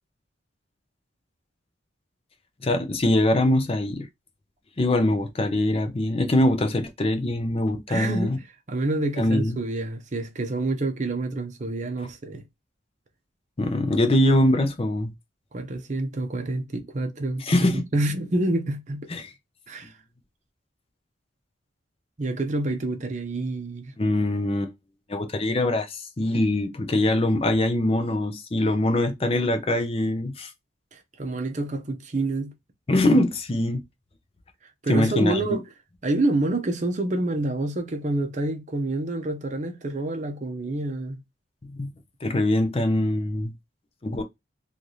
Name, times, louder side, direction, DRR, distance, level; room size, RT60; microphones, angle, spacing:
voice 1, 2.6-4.1 4.8-8.4 9.2-9.6 13.6-15.1 17.4-17.8 19.1-19.3 24.0-24.7 25.1-30.5 32.9-33.8 34.9-35.6 41.6-41.9 42.2-43.5 44.0-44.2, left 1 dB, 30° left, 0.5 m, -23 dB
voice 2, 7.9-8.4 8.7-12.5 15.5-19.1 19.7-19.9 22.2-23.9 30.9-32.5 34.8-35.6 36.0-41.2, right 2 dB, 40° right, 0.6 m, -28 dB
3.2 x 2.4 x 2.6 m
head